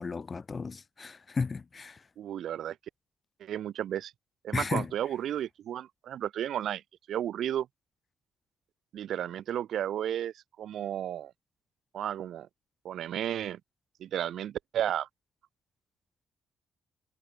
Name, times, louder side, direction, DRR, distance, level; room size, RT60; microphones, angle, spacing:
voice 1, 0.0-2.0 4.5-4.9, left 4 dB, 30° left, 2.2 m, -34 dB
voice 2, 2.2-2.8 3.4-4.1 4.4-6.8 7.1-7.7 8.9-10.3 10.6-11.3 11.9-12.5 12.8-13.6 14.0-15.1, right 10 dB, 70° right, 4.1 m, -33 dB
cardioid pair, 130°, 0 cm